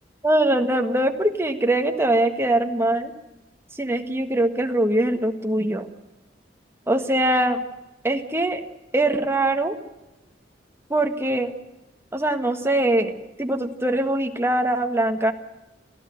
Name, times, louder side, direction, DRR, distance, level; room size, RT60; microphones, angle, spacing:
voice 1, 0.2-3.1 3.8-5.9 6.9-7.6 8.0-8.6 8.9-9.7 10.9-11.5 12.1-13.1 13.4-15.3, right 1 dB, 15° right, 5 dB, 1.6 m, -22 dB
26.5 x 15.0 x 7.8 m, 1.0 s
head